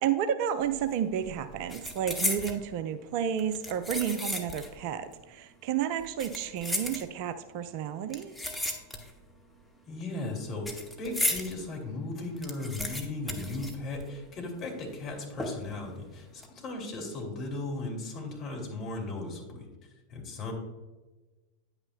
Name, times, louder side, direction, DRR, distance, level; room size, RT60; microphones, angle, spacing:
voice 1, 0.0-8.3, right 9 dB, 45° right, 10 dB, 0.4 m, -31 dB
sound 1, 0.6-0.9 1.2-2.6 3.4-4.8 5.1-5.2 6.0-7.4 8.1-9.3 9.6-11.5 11.9-12.0 12.2-14.3 14.6-14.7 15.4-15.8 16.2-16.5, left 1 dB, ahead, 1.1 m, -34 dB
voice 2, 9.9-19.7 20.1-20.5, left 2 dB, 30° left, 0 dB, 2.3 m, -36 dB
9.7 x 8.8 x 2.2 m, 1.2 s
figure-of-eight pair, 90°, 0 cm